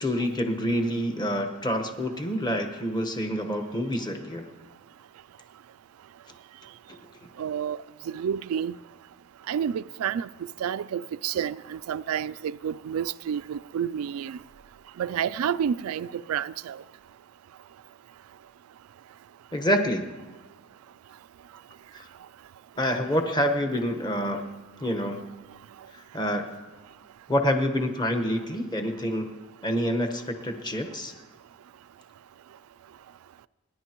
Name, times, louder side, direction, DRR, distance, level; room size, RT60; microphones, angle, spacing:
voice 1, 0.0-4.5 19.5-20.1 21.9-22.1 22.8-24.4 24.8-25.2 25.9-26.6 27.3-29.3 29.6-31.1, equal, 20° left, 1.2 m, -27 dB
voice 2, 7.4-7.8 8.1-8.8 9.5-10.3 10.6-14.4 15.0-16.8, right 8 dB, 80° right, 0.3 m, -29 dB
30.0 x 10.5 x 3.0 m
head